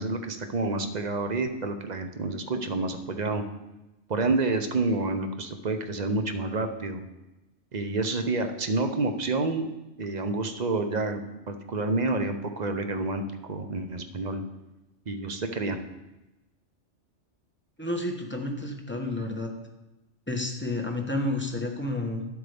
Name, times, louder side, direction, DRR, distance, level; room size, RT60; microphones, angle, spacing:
voice 1, 0.0-3.4 4.1-7.0 7.7-9.7 10.0-14.4 15.1-15.8, right 3 dB, 40° right, 7 dB, 0.8 m, -29 dB
voice 2, 17.8-19.5 20.3-22.3, left 2 dB, 10° left, 1 dB, 1.1 m, -30 dB
11.5 x 7.9 x 3.5 m, 0.99 s
omnidirectional pair, 1.3 m